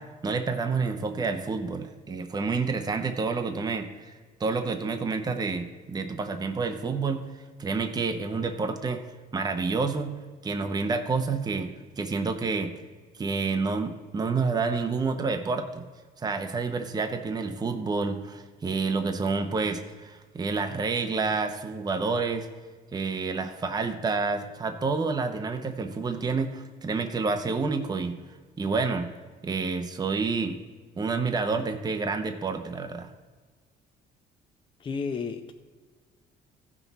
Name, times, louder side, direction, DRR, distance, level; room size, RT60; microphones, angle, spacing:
voice 1, 0.0-4.1 4.4-7.2 7.6-9.0 9.3-10.2 10.4-12.7 13.2-15.8 16.2-22.5 22.9-28.1 28.6-29.1 29.4-30.6 31.0-33.1, right 4 dB, 25° right, 6 dB, 0.8 m, -29 dB
voice 2, 34.8-35.5, left 5 dB, 30° left, 4 dB, 0.6 m, -32 dB
14.5 x 6.1 x 4.1 m, 1.5 s
cardioid pair, 110°, 17 cm